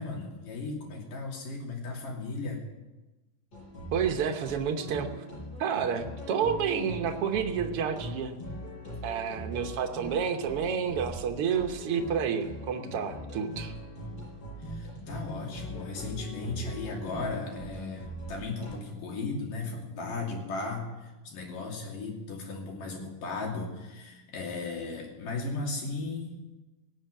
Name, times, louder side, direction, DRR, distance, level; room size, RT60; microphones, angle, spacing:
voice 1, 0.0-2.6 14.6-26.4, left 3 dB, 75° left, 0 dB, 4.3 m, -36 dB
sound 1, 3.5-18.7, equal, 30° left, 7.6 m, -41 dB
voice 2, 3.9-5.1 5.6-8.3 9.0-13.7, right 7 dB, 65° right, 5 dB, 1.4 m, -30 dB
18.0 x 7.4 x 8.9 m, 1.1 s
omnidirectional pair, 3.9 m